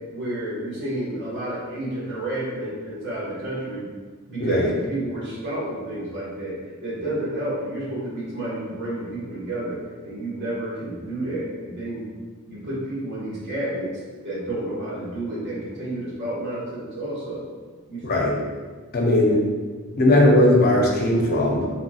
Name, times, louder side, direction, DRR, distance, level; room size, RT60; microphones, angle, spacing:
voice 1, 0.1-3.9 4.3-12.1 12.5-13.9 14.2-17.5 17.9-18.0, right 1 dB, 55° right, -8 dB, 1.1 m, -30 dB
voice 2, 4.4-4.7 18.0-18.4 18.9-19.4 20.0-21.7, left 1 dB, 45° left, -1 dB, 0.5 m, -18 dB
3.0 x 2.7 x 2.3 m, 1.4 s
head